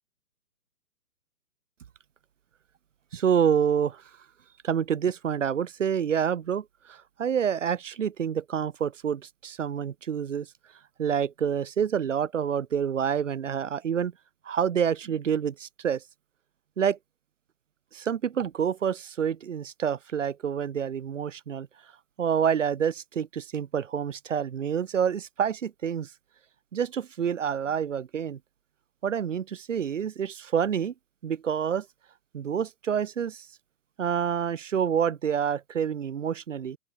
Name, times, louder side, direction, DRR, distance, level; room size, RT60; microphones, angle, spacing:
voice 1, 3.1-4.0 4.6-10.5 11.0-14.1 14.4-16.0 16.8-17.0 17.9-21.7 22.2-26.1 26.7-28.4 29.0-30.9 31.2-31.9 32.3-33.5 34.0-36.8, right 8 dB, 50° right, 0.8 m, -27 dB
open air
figure-of-eight pair, 130°, 47 cm